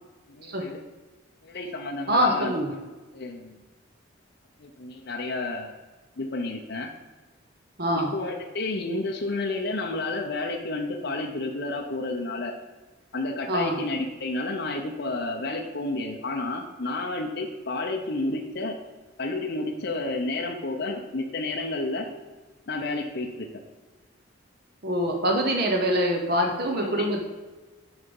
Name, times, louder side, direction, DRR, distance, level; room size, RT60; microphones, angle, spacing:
voice 1, 0.3-0.8 1.4-3.6 4.6-5.7 6.2-6.9 7.9-12.5 13.1-18.7 19.2-22.1 22.7-23.5 26.4-27.1, left 2 dB, 55° left, 1 dB, 0.7 m, -31 dB
voice 2, 2.1-2.7 7.8-8.1 13.5-13.8 24.8-27.2, equal, 50° right, 2 dB, 1.0 m, -24 dB
6.8 x 5.7 x 5.3 m, 1.3 s
head